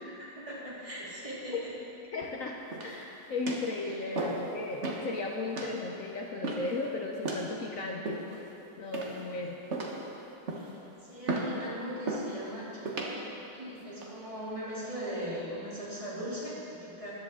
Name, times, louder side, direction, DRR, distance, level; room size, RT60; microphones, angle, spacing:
voice 1, 0.2-1.7 3.8-4.2 10.5-13.2 13.5-17.1, equal, 15° right, -9 dB, 3.1 m, -40 dB
voice 2, 2.1-9.6, left 3 dB, 65° left, 1 dB, 0.8 m, -36 dB
sound 1, 2.7-3.1 3.5-3.7 4.2-4.5 4.8-5.1 5.6-5.8 6.4-6.8 7.2-7.5 8.1-8.5 8.9-9.3 9.7-10.1 10.5-10.8 11.3-11.6 12.1-12.3 12.9-13.1 13.8-14.1, right 2 dB, 40° right, 1.2 m, -34 dB
15.0 x 10.5 x 3.7 m, 2.9 s
omnidirectional pair, 2.2 m